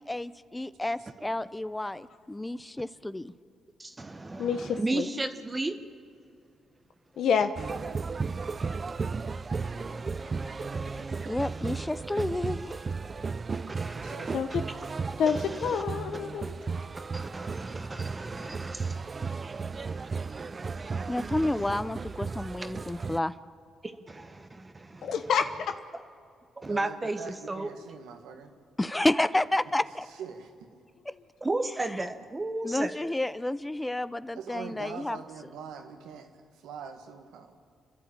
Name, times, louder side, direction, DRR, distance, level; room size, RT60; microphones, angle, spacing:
voice 1, 0.0-3.3 11.3-12.8 21.1-23.3 28.8-30.1 32.6-35.2, left 1 dB, 15° left, 15 dB, 0.7 m, -30 dB
voice 2, 3.8-5.7 8.8-11.9 13.7-14.3 15.3-15.8 17.1-21.3 23.8-25.1 26.6-27.2 27.5-27.7 31.4-32.9, right 2 dB, 25° right, 7 dB, 1.2 m, -36 dB
voice 3, 4.4-5.1 7.2-7.5 14.3-14.5 15.2-16.5 25.0-25.5, left 7 dB, 70° left, 8 dB, 1.0 m, -27 dB
sound 1, 7.6-23.2, right 4 dB, 40° right, 0.6 m, -35 dB
voice 4, 13.7-14.6 26.6-28.5 30.1-30.7 34.3-37.6, right 6 dB, 85° right, 5 dB, 1.9 m, -44 dB
30.0 x 11.5 x 8.8 m, 2.2 s
supercardioid pair, 60°, 0 cm